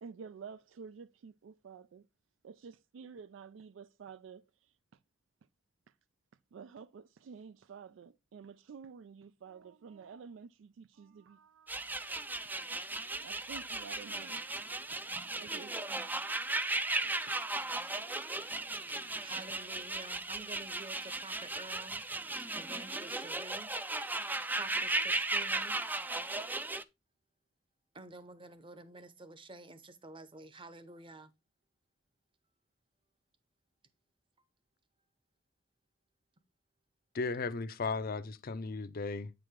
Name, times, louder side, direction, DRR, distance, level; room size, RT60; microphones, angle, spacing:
voice 1, 0.0-2.1 2.4-4.4 6.5-11.9 13.2-14.7 15.1-16.2 17.0-17.2, right 6 dB, 75° right, 0.4 m, -51 dB
sound 1, 11.7-26.8, right 2 dB, 10° right, 0.4 m, -36 dB
voice 2, 18.8-22.0 22.5-23.7 24.6-25.8 27.9-31.3, right 2 dB, 25° right, 0.8 m, -50 dB
voice 3, 37.1-39.3, left 4 dB, 50° left, 0.6 m, -36 dB
8.6 x 4.8 x 3.6 m
head